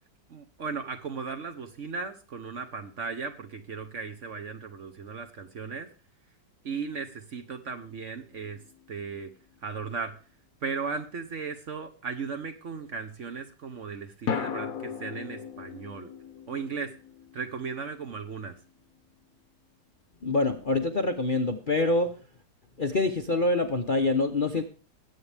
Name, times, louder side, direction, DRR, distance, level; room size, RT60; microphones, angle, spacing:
voice 1, 0.3-5.9 6.6-8.6 8.9-9.3 9.6-10.1 10.6-16.1 16.5-16.9 17.3-18.6, right 5 dB, 50° right, 7 dB, 1.1 m, -36 dB
sound 1, 8.3-9.4 14.3-18.6, left 7 dB, 55° left, 1.3 m, -38 dB
voice 2, 20.2-22.1 22.8-24.6, left 2 dB, 40° left, 5 dB, 0.8 m, -25 dB
21.0 x 8.4 x 3.4 m, 0.36 s
omnidirectional pair, 1.9 m